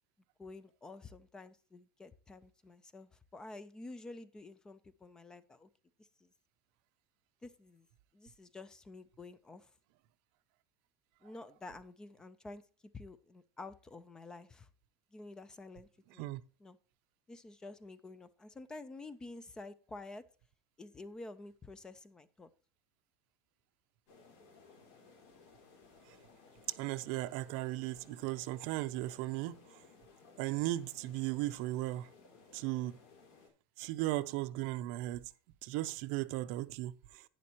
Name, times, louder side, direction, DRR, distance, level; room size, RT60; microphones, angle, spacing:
voice 1, 0.4-5.7 6.0-6.3 7.4-7.9 8.1-9.7 11.2-12.6 12.9-14.7 15.1-16.3 16.6-16.8 17.3-20.2 20.8-22.5, left 2 dB, 10° left, 0.4 m, -50 dB
sound 1, 24.1-33.5, left 4 dB, 65° left, 4.5 m, -60 dB
voice 2, 26.8-29.6 30.4-32.1 32.5-33.0 33.8-35.3 35.6-37.3, right 16 dB, 60° right, 0.6 m, -36 dB
11.0 x 9.5 x 2.9 m
cardioid pair, 175°, 6 cm